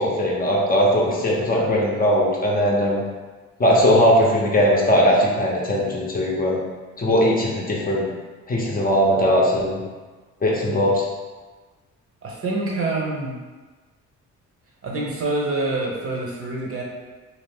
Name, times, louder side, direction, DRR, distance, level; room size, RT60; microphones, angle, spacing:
voice 1, 0.0-3.0 3.6-6.6 7.0-8.0 8.5-9.8 10.4-11.0, equal, 30° left, -3 dB, 0.7 m, -19 dB
voice 2, 12.2-13.4 14.8-16.8, right 2 dB, 50° right, -2 dB, 0.8 m, -26 dB
2.6 x 2.4 x 3.5 m, 1.3 s
cardioid pair, 90°, 30 cm